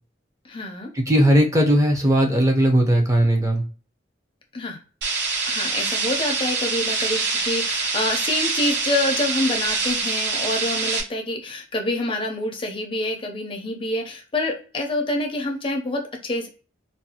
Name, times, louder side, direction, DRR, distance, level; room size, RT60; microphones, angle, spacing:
voice 1, 0.4-0.9 4.5-4.8 5.5-16.5, left 2 dB, 30° left, 3 dB, 0.5 m, -27 dB
voice 2, 0.9-3.6, equal, 15° right, 1 dB, 0.6 m, -18 dB
tv static chopped and screwed, 5.0-11.0, right 4 dB, 65° right, 0.7 m, -25 dB
2.5 x 2.2 x 2.8 m, 0.38 s
head